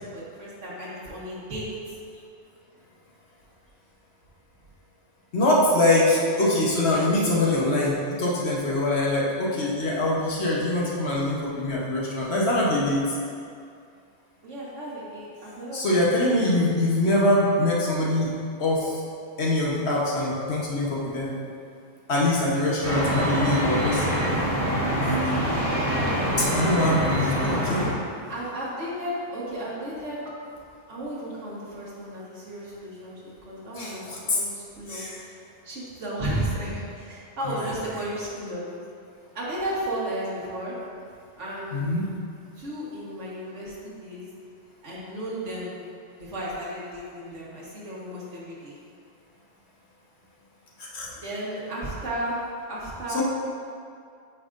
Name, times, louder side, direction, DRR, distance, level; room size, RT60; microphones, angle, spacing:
voice 1, 0.0-2.0 14.4-16.2 16.5-16.6 26.0-26.2 28.3-30.2 30.9-34.1 34.3-35.1 35.6-38.6 39.3-40.7 41.4-41.8 42.6-44.3 44.8-45.7 46.2-48.8 51.1-52.4 52.7-53.2, right 1 dB, 75° right, -6 dB, 1.7 m, -34 dB
voice 2, 5.3-13.0 15.7-18.3 18.6-19.0 19.4-21.3 22.1-24.1 24.9-25.4 26.4-27.8 33.7-34.4 34.9-35.2 37.4-38.0 41.7-42.0 50.8-51.1 53.1-53.2, left 1 dB, 65° left, -5 dB, 1.3 m, -24 dB
sound 1, 22.8-27.9, equal, 30° right, 1.5 m, -25 dB
8.5 x 4.7 x 2.5 m, 2.3 s
omnidirectional pair, 1.2 m